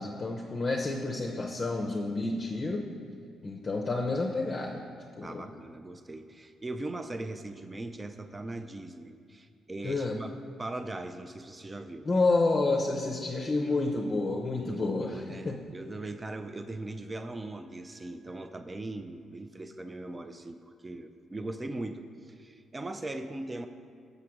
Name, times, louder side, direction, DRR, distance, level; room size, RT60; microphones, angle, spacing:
voice 1, 0.0-2.9 3.4-4.8 5.2-5.5 9.8-10.2 12.0-15.6, left 3 dB, 30° left, -1 dB, 0.7 m, -29 dB
voice 2, 5.2-10.3 10.6-12.1 14.6-23.7, right 2 dB, 20° right, 8 dB, 0.4 m, -40 dB
6.8 x 4.9 x 5.9 m, 2.3 s
cardioid pair, 90°, 0 cm